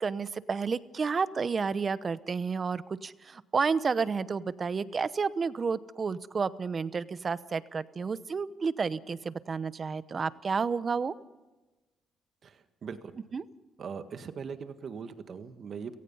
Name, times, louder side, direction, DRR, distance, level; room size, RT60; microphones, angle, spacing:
voice 1, 0.0-11.1 13.3-13.4, right 5 dB, 40° right, 15 dB, 0.9 m, -31 dB
voice 2, 12.4-13.1 13.8-16.0, right 6 dB, 55° right, 9 dB, 1.7 m, -40 dB
30.0 x 17.5 x 5.6 m, 1.1 s
cardioid pair, 90°, 0 cm